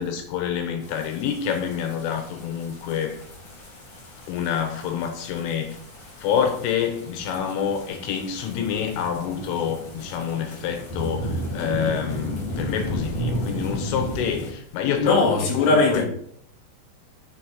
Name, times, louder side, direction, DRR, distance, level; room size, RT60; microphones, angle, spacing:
voice 1, 0.0-3.2 4.3-5.8 6.2-16.0, left 8 dB, 90° left, 3.7 m, -27 dB
sound 1, 0.8-14.5, equal, 45° left, 2.8 m, -34 dB
voice 2, 15.0-16.0, left 3 dB, 65° left, 4.0 m, -19 dB
7.5 x 6.4 x 5.8 m
omnidirectional pair, 5.6 m